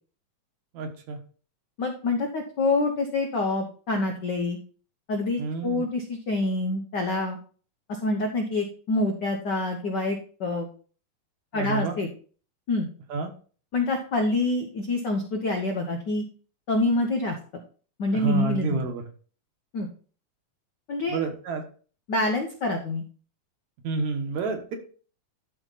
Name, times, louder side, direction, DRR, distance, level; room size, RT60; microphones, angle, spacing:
voice 1, 0.7-1.2 5.4-5.8 11.5-12.0 13.1-13.3 18.1-19.1 21.1-21.6 23.8-24.8, right 4 dB, 70° right, 4 dB, 2.5 m, -29 dB
voice 2, 1.8-4.6 5.1-7.4 8.0-10.7 11.5-12.1 12.7-12.9 13.7-16.2 16.7-17.4 18.0-18.8 19.7-19.9 20.9-21.2 22.1-23.0, left 2 dB, 70° left, 2 dB, 1.0 m, -26 dB
13.0 x 4.4 x 4.0 m, 0.41 s
omnidirectional pair, 3.5 m